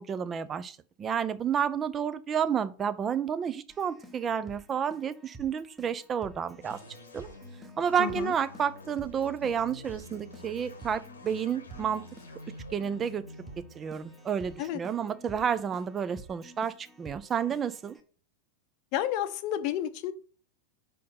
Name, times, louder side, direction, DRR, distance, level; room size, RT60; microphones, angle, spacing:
voice 1, 0.0-6.8 7.1-7.3 7.8-12.0 12.7-13.2 13.8-18.0, right 8 dB, 25° right, 0.5 m, -30 dB
Keyboard (musical), 3.7-18.0, right 2 dB, 5° right, 1.1 m, -51 dB
sound 1, 6.6-16.1, left 2 dB, 75° left, 1.0 m, -49 dB
voice 2, 8.0-8.3 14.6-14.8 18.9-20.1, left 11 dB, 45° left, 0.7 m, -31 dB
5.2 x 4.2 x 5.6 m
figure-of-eight pair, 90°, 0 cm